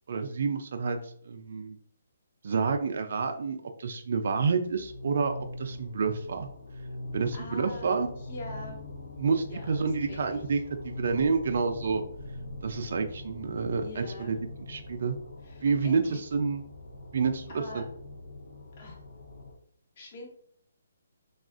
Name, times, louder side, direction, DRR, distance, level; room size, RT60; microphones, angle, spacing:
voice 1, 0.1-1.8 2.4-6.5 7.1-8.1 9.2-12.0 12.6-14.4 14.7-15.2 15.6-16.6 17.1-17.9, right 5 dB, 60° right, 5 dB, 0.3 m, -29 dB
sound 1, 4.2-19.5, left 2 dB, 75° left, 0.7 m, -43 dB
voice 2, 7.3-7.9 8.2-8.8 9.5-10.4 13.8-14.3 15.4-16.2 17.5-17.8 18.8-19.0 20.0-20.3, left 2 dB, 45° left, -1 dB, 1.0 m, -43 dB
3.4 x 2.3 x 2.4 m, 0.64 s
hypercardioid pair, 150°, 0 cm